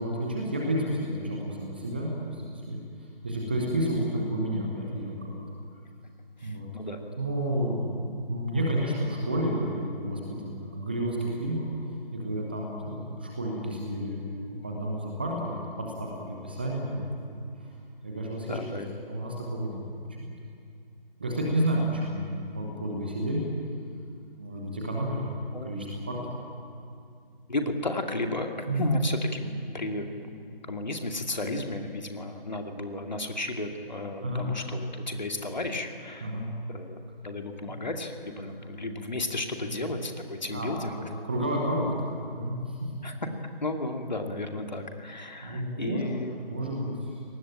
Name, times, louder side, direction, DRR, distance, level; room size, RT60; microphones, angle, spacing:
voice 1, 0.0-5.4 6.4-6.7 7.2-11.7 12.1-17.7 18.0-18.6 19.1-20.3 21.2-23.4 24.4-25.3 25.6-26.2 28.7-28.9 34.2-34.5 36.2-36.5 37.6-37.7 39.6-39.8 40.5-42.9 45.4-46.0 46.5-47.2, right 1 dB, 10° right, -1 dB, 1.1 m, -31 dB
voice 2, 6.4-7.0 18.5-19.0 25.5-25.9 27.5-36.3 36.7-37.0 37.2-41.0 43.0-43.1 43.6-46.3, left 2 dB, 50° left, 4 dB, 2.4 m, -33 dB
26.5 x 19.0 x 8.8 m, 2.5 s
figure-of-eight pair, 160°, 30 cm